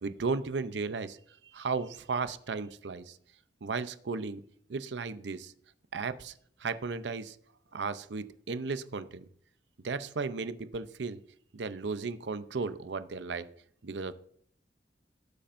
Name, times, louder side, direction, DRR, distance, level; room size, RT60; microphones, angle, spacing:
voice 1, 0.0-1.2 1.5-3.0 3.6-4.4 4.7-5.5 5.9-6.3 6.6-7.3 7.7-9.2 9.8-11.2 11.5-13.5 13.8-14.1, right 4 dB, 80° right, 12 dB, 0.6 m, -35 dB
17.5 x 8.6 x 2.6 m, 0.63 s
head